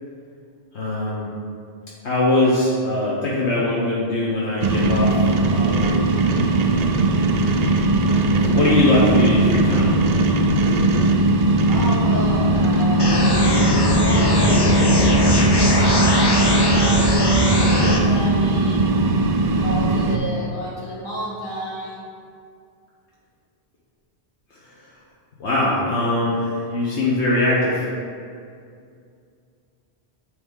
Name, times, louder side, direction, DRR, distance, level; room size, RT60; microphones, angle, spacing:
voice 1, 0.7-1.3 2.0-5.1 5.5-6.1 8.4-9.9 25.4-27.8, left 2 dB, 75° left, -6 dB, 1.2 m, -21 dB
sound 1, 4.6-20.2, right 2 dB, 60° right, 0.4 m, -18 dB
voice 2, 11.7-15.8 16.1-18.9 19.5-22.0, equal, 45° left, -6 dB, 1.7 m, -32 dB
sound 2, 13.0-18.0, left 1 dB, 30° left, 0.5 m, -20 dB
9.2 x 3.3 x 3.7 m, 2.3 s
omnidirectional pair, 1.2 m